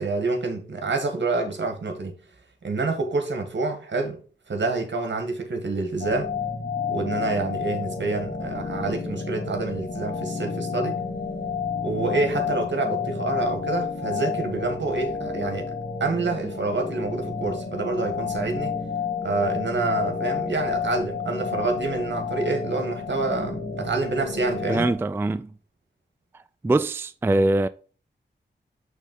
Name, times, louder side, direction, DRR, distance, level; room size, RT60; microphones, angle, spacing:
voice 1, 0.0-2.2 2.6-4.2 4.5-6.3 6.9-11.0 11.8-15.7 16.0-18.7 19.2-24.9, right 3 dB, 70° right, 1.5 m, -27 dB
sound 1, 6.0-24.9, left 5 dB, 45° left, 1.4 m, -30 dB
voice 2, 24.7-25.5 26.6-27.7, right 2 dB, 10° right, 0.3 m, -22 dB
6.4 x 3.3 x 5.3 m
cardioid pair, 45°, 19 cm